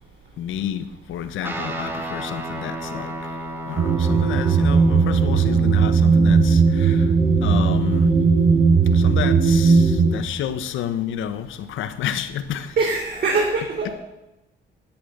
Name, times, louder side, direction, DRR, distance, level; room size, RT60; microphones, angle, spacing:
voice 1, 0.4-3.4 3.7-7.1 7.4-8.1 8.9-12.8 13.8-13.9, left 10 dB, 85° left, 1.1 m, -30 dB
Guitar, 1.4-10.2, equal, 10° right, 3.0 m, -36 dB
sound 1, 3.8-10.1, right 5 dB, 70° right, 5.3 m, -17 dB
voice 2, 12.8-13.9, right 3 dB, 50° right, 3.1 m, -22 dB
12.0 x 8.9 x 7.9 m
cardioid pair, 90°, 20 cm